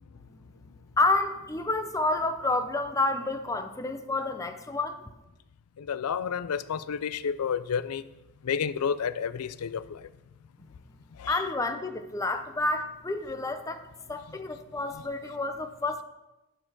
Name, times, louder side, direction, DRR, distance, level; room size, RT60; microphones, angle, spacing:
voice 1, 1.0-5.1 11.3-16.0, left 2 dB, 15° left, 0.5 m, -29 dB
voice 2, 5.8-8.0 8.4-10.1 11.2-11.4, left 7 dB, 90° left, 0.4 m, -30 dB
11.0 x 4.6 x 6.1 m
head